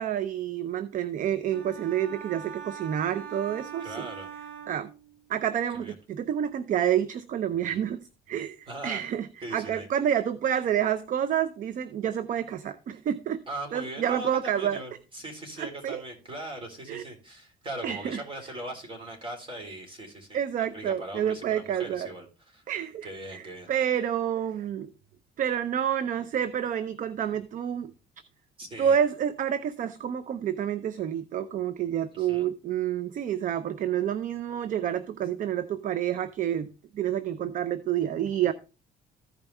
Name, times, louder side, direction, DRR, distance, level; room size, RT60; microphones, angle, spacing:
voice 1, 0.0-4.1 4.7-4.9 5.3-13.4 13.7-14.8 15.6-16.0 16.9-17.0 17.8-18.2 20.3-22.1 22.7-24.9 25.4-27.9 28.8-38.5, right 9 dB, 50° right, 0.6 m, -29 dB
sound 1, 1.5-5.4, right 8 dB, 70° right, 3.3 m, -42 dB
voice 2, 3.8-4.3 5.7-5.9 8.7-9.0 9.4-9.9 13.5-20.4 20.7-22.6 23.0-23.7 28.6-29.0 32.1-32.5, right 1 dB, 30° right, 3.7 m, -40 dB
14.5 x 5.5 x 3.4 m
cardioid pair, 110°, 17 cm